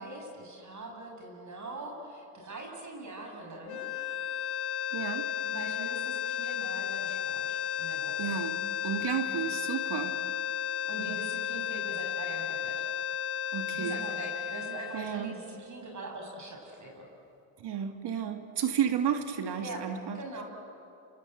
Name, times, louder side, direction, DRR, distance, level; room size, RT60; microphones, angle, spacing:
voice 1, 0.0-3.9 5.5-8.3 10.9-12.8 13.7-17.1 19.6-19.8 20.1-20.4, right 2 dB, 35° right, 1 dB, 7.5 m, -42 dB
sound 1, 3.7-15.9, left 10 dB, 50° left, 1.9 m, -34 dB
voice 2, 4.9-5.3 8.2-8.6 8.8-10.2 13.5-14.0 14.9-15.3 17.6-20.2, right 8 dB, 55° right, 6 dB, 2.1 m, -32 dB
28.5 x 26.0 x 8.0 m, 2.7 s
hypercardioid pair, 70°, 49 cm